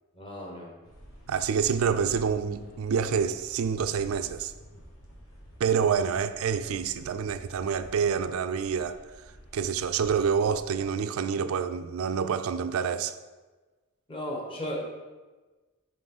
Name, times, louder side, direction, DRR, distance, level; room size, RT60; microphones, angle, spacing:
voice 1, 0.1-0.7 14.1-14.8, equal, 25° left, 1.2 m, -35 dB
sound 1, 0.8-10.8, equal, 70° left, 1.4 m, -50 dB
voice 2, 1.3-4.5 5.6-9.0 9.5-13.1, right 6 dB, 70° right, 0.3 m, -27 dB
5.3 x 3.9 x 5.4 m
head